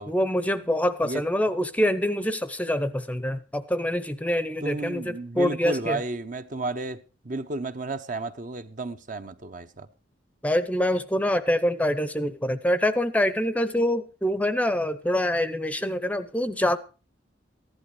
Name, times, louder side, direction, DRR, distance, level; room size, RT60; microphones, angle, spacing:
voice 1, 0.1-6.0 10.4-16.8, left 1 dB, 10° left, 0.7 m, -25 dB
voice 2, 4.6-9.9, right 2 dB, 45° right, 0.9 m, -33 dB
15.0 x 11.0 x 4.8 m
head